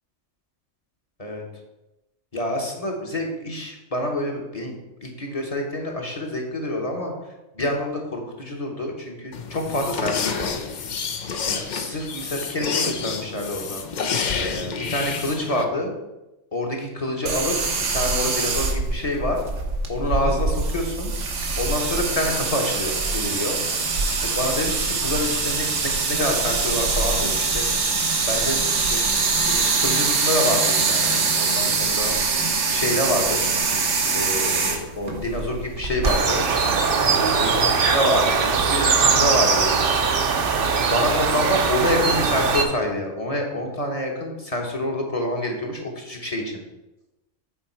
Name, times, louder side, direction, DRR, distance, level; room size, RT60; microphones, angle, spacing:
voice 1, 2.3-4.7 5.0-7.1 7.5-10.5 11.5-13.8 14.3-15.9 16.5-17.6 17.9-19.4 19.9-21.1 21.6-23.6 24.1-27.7 28.3-29.0 29.5-32.1 32.7-33.5 34.1-39.8 40.9-46.6, left 1 dB, 30° left, 1 dB, 1.1 m, -27 dB
sound 1, 9.3-15.6, left 5 dB, 50° left, 0.5 m, -29 dB
sound 2, 17.3-36.2, right 4 dB, 85° right, 1.4 m, -23 dB
sound 3, 36.0-42.6, right 5 dB, 55° right, 0.8 m, -21 dB
7.2 x 4.6 x 4.4 m, 0.98 s
omnidirectional pair, 1.3 m